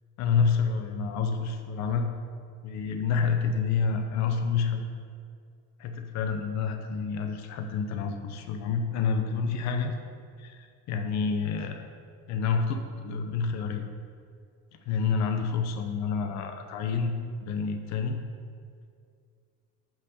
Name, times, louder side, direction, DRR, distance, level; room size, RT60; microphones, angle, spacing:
voice 1, 0.2-2.1 2.6-5.0 5.8-10.0 10.4-11.8 12.3-13.8 14.9-18.2, left 5 dB, 65° left, 5 dB, 0.9 m, -28 dB
6.0 x 5.7 x 6.7 m, 2.2 s
cardioid pair, 115°, 30 cm